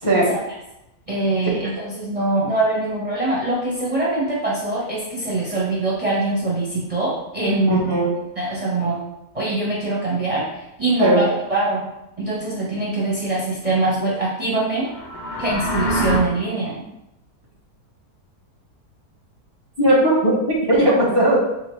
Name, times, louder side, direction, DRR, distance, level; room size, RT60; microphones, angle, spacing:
voice 1, 1.1-7.9 8.4-9.0 9.3-11.9 12.2-14.9 15.4-16.8, right 2 dB, 30° right, -6 dB, 0.7 m, -23 dB
voice 2, 7.7-8.1 11.0-11.2 19.8-21.4, right 1 dB, 25° left, -5 dB, 0.6 m, -17 dB
sound 1, 14.8-16.2, equal, 55° left, 0.8 m, -25 dB
4.0 x 3.7 x 3.2 m, 0.88 s
omnidirectional pair, 1.7 m